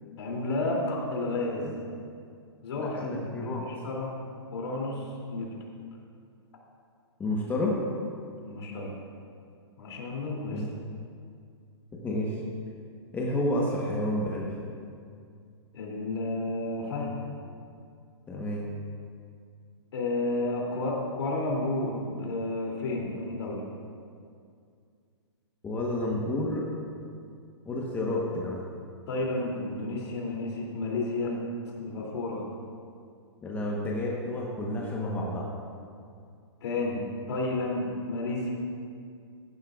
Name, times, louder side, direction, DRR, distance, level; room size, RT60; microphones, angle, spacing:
voice 1, 0.2-1.7 2.6-4.1 4.5-5.5 8.4-8.9 9.8-10.6 15.7-17.2 19.9-23.6 29.1-31.4 31.8-32.4 36.6-38.5, left 2 dB, 65° left, -2 dB, 2.9 m, -31 dB
voice 2, 2.8-3.7 7.2-7.7 10.5-10.6 12.0-12.4 13.1-14.5 18.3-18.7 25.6-26.6 27.7-28.6 33.4-35.5, left 1 dB, 10° left, -3 dB, 1.1 m, -30 dB
15.5 x 11.5 x 2.4 m, 2.3 s
hypercardioid pair, 145°, 14 cm